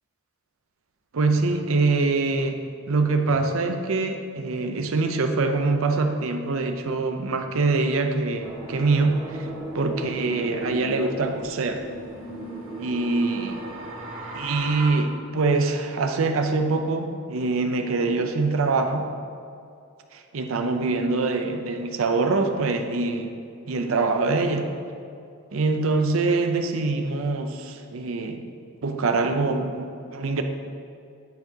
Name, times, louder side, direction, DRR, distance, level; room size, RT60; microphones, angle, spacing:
voice 1, 1.1-9.5 9.7-11.8 12.8-13.6 14.3-19.1 20.1-23.4 23.7-24.7 25.5-28.5 28.8-30.4, right 3 dB, 75° right, 6 dB, 0.5 m, -24 dB
sound 1, 8.4-14.9, right 1 dB, 25° right, 1.5 m, -36 dB
10.5 x 4.5 x 2.8 m, 2.5 s
head